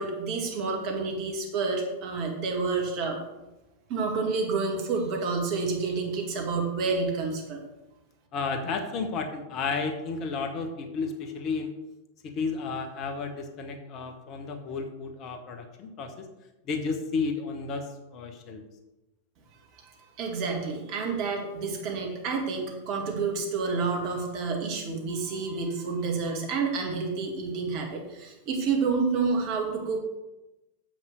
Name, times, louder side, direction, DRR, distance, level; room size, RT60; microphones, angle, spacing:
voice 1, 0.0-3.2 3.9-7.6 19.7-30.0, right 4 dB, 45° right, 1 dB, 2.2 m, -29 dB
voice 2, 8.3-11.7 12.2-16.2 16.7-17.8 18.1-18.6, left 4 dB, 35° left, 5 dB, 1.2 m, -32 dB
7.3 x 6.0 x 6.3 m, 0.99 s
figure-of-eight pair, 90°, 0 cm